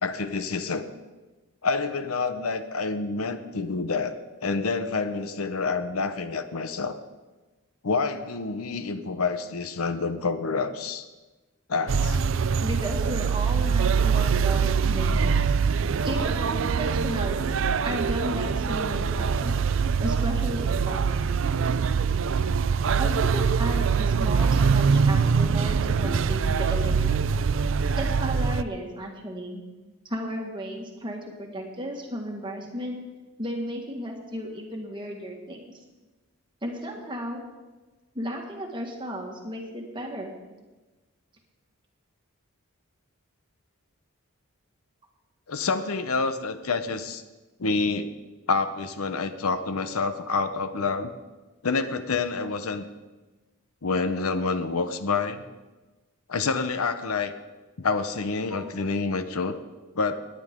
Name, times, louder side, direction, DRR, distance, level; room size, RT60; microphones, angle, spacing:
voice 1, 0.0-0.8 1.6-7.0 7.8-11.1 11.7-12.2 45.5-47.2 47.6-48.1 48.5-51.1 51.6-52.9 53.8-55.4 56.3-57.3 57.8-59.6 60.0-60.2, left 4 dB, 80° left, 10 dB, 0.8 m, -28 dB
sound 1, 11.9-28.6, right 5 dB, 60° right, 0.4 m, -23 dB
voice 2, 12.6-15.5 16.0-17.5 17.8-19.6 20.0-21.2 23.0-27.3 28.0-29.6 30.0-33.0 33.4-35.7 36.6-37.4 38.1-40.3 58.5-58.8, equal, 20° right, 1 dB, 1.7 m, -34 dB
19.0 x 9.9 x 3.7 m, 1.2 s
head